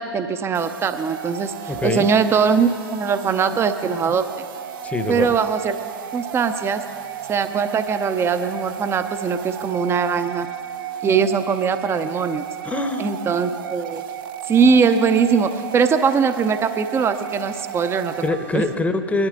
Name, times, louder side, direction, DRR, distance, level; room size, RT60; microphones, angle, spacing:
voice 1, 0.0-1.5 1.8-4.2 5.1-5.8 6.1-6.8 7.3-10.5 11.0-12.4 13.0-14.0 14.5-18.1 18.5-18.6, right 6 dB, 20° right, 10 dB, 0.7 m, -21 dB
sound 1, 0.5-18.8, right 10 dB, 60° right, 0.8 m, -34 dB
voice 2, 1.7-2.1 4.8-5.3 12.6-13.1 18.2-19.3, left 2 dB, 10° left, 9 dB, 0.9 m, -24 dB
22.0 x 12.5 x 3.8 m, 2.2 s
figure-of-eight pair, 100°, 13 cm